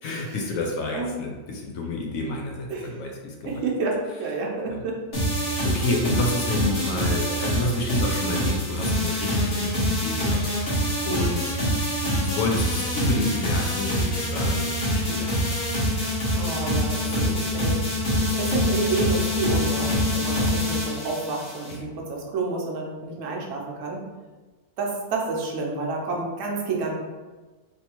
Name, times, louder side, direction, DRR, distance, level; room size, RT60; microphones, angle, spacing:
voice 1, 0.0-3.6 4.7-4.8 5.4-11.4 12.0-15.6 16.4-16.5 17.0-17.5 21.7-21.9, left 2 dB, 70° left, 0 dB, 0.9 m, -30 dB
voice 2, 3.4-5.0 16.4-17.8 18.4-24.0 24.8-26.9, right 3 dB, 60° right, -1 dB, 1.0 m, -29 dB
sound 1, 5.1-21.7, equal, 45° left, 1.2 m, -25 dB
3.2 x 2.7 x 2.9 m, 1.3 s
omnidirectional pair, 1.6 m